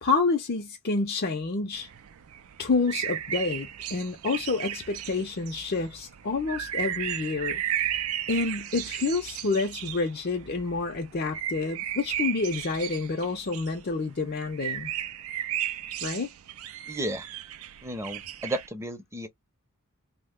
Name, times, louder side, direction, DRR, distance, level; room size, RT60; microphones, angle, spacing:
voice 1, 0.0-1.9 2.6-7.6 8.3-14.9 16.0-16.3, left 3 dB, 45° left, 0.6 m, -28 dB
sound 1, 1.7-18.7, right 11 dB, 65° right, 0.4 m, -35 dB
voice 2, 16.9-17.3 17.8-19.3, right 1 dB, 10° right, 0.6 m, -33 dB
3.1 x 2.1 x 3.5 m
head